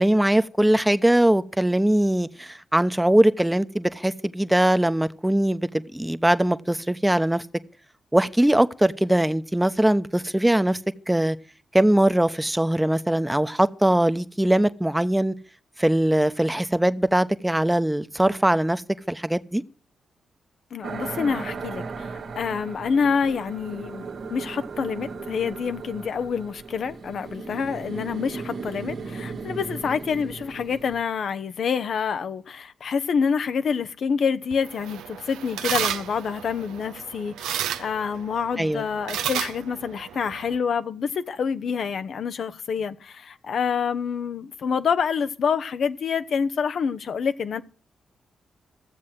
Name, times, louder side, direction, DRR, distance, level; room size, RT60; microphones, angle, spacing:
voice 1, 0.0-7.4 8.1-10.8 11.1-11.4 11.7-15.3 15.8-18.8 19.1-19.6 38.6-38.8, right 1 dB, 10° right, 0.9 m, -21 dB
voice 2, 20.7-47.6, left 6 dB, 65° left, 0.8 m, -27 dB
sound 1, 20.8-31.0, right 4 dB, 70° right, 1.6 m, -36 dB
sound 2, 34.5-40.6, right 10 dB, 85° right, 0.6 m, -32 dB
14.5 x 7.5 x 7.6 m
supercardioid pair, 45°, 0 cm